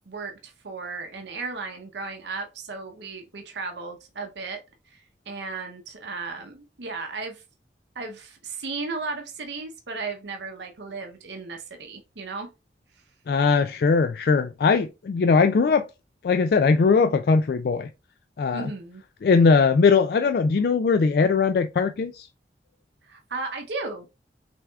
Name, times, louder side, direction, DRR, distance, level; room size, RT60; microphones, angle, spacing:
voice 1, 0.1-4.6 4.9-7.4 7.9-12.5 18.5-19.0 23.0-24.1, right 4 dB, 80° right, 0.8 m, -35 dB
voice 2, 13.3-15.9 16.2-17.9 18.4-18.7 19.2-22.3, left 4 dB, 55° left, 0.3 m, -20 dB
5.7 x 3.5 x 2.3 m
head